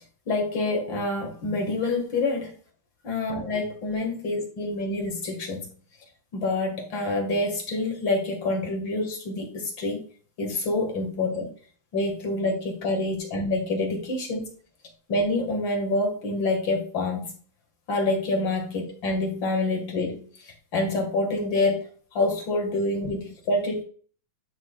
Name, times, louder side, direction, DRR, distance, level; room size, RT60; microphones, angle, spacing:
voice 1, 0.3-2.5 3.0-5.6 6.3-10.0 10.4-11.5 11.9-14.5 15.1-17.4 17.9-23.8, left 2 dB, 40° left, 1 dB, 2.1 m, -27 dB
10.5 x 6.0 x 2.4 m, 0.43 s
omnidirectional pair, 4.0 m